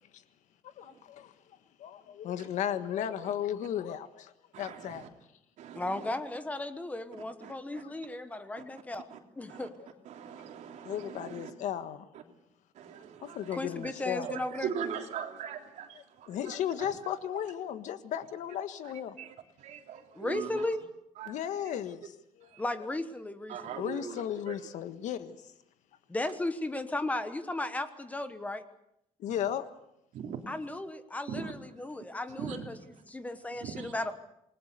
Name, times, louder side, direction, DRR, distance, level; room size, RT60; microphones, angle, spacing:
voice 1, 0.6-1.3 1.8-5.1 10.8-12.1 13.2-14.3 15.9-19.2 21.2-22.6 23.7-25.5 29.2-29.6, left 10 dB, 80° left, 1.6 m, -35 dB
voice 2, 4.5-5.1 5.6-6.1 7.4-7.5 9.1-9.2 9.5-9.7 10.0-11.5 12.1-12.2 12.7-13.6 14.2-16.9 18.8-18.9 19.2-20.7 21.2-21.3 22.5-22.6 23.5-24.5 30.1-30.4 31.3-31.5 32.4-32.7 33.6-33.9, right 7 dB, 70° right, 3.4 m, -40 dB
voice 3, 5.7-9.1 9.4-9.7 13.5-14.7 20.1-20.8 22.6-23.9 26.1-28.6 30.5-32.8 33.1-34.1, left 2 dB, 10° left, 1.2 m, -35 dB
28.0 x 20.5 x 6.9 m
cardioid pair, 175°, 12 cm